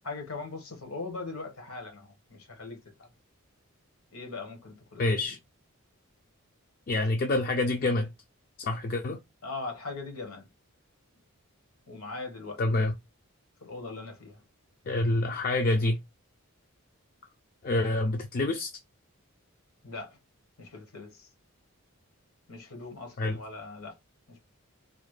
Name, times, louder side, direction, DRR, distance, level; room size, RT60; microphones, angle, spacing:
voice 1, 0.0-3.1 4.1-5.2 9.4-10.5 11.9-12.6 13.6-14.4 19.8-20.2 20.6-21.3 22.5-24.0 24.3-24.4, left 3 dB, 75° left, 1.3 m, -40 dB
voice 2, 5.0-5.4 6.9-8.1 8.6-9.2 12.6-12.9 14.9-16.0 17.6-18.7 23.2-23.4, left 2 dB, 40° left, 0.4 m, -27 dB
4.0 x 2.1 x 3.2 m
head